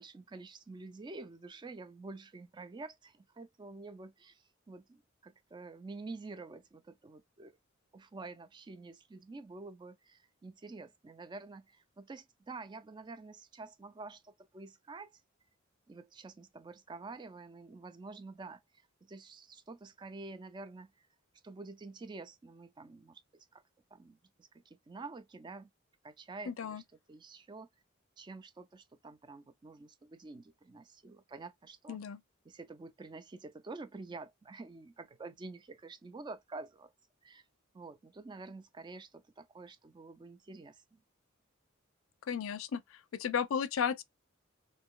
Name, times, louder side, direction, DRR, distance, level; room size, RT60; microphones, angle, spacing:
voice 1, 0.0-7.5 7.9-15.2 15.9-18.6 19.0-20.9 21.4-23.6 23.9-25.7 26.0-26.8 27.1-27.7 28.2-32.0 32.4-36.9 37.2-37.4 37.7-41.0, right 3 dB, 20° right, 0.3 m, -48 dB
voice 2, 26.5-26.8 31.9-32.2 42.3-42.8 43.1-44.0, left 7 dB, 85° left, 0.4 m, -33 dB
2.6 x 2.3 x 3.7 m
head